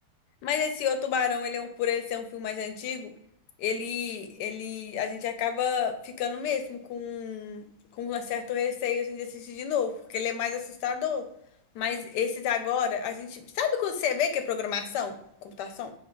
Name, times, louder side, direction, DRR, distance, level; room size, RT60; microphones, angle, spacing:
voice 1, 0.4-3.1 3.6-7.6 8.0-11.2 11.7-15.9, left 7 dB, 80° left, 8 dB, 1.2 m, -30 dB
6.7 x 2.8 x 2.2 m, 0.74 s
omnidirectional pair, 1.8 m